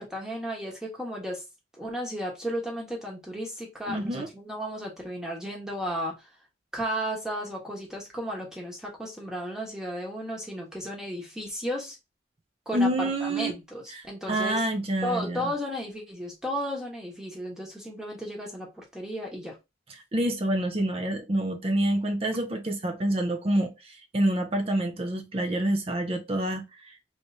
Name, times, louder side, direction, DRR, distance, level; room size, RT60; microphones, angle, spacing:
voice 1, 0.0-1.4 1.8-6.3 6.7-12.0 12.7-14.6 15.0-19.6, equal, 5° right, 1.1 m, -34 dB
voice 2, 3.9-4.3 12.7-13.5 13.9-15.5 20.1-27.0, right 1 dB, 30° right, 0.5 m, -27 dB
3.2 x 3.1 x 2.7 m
head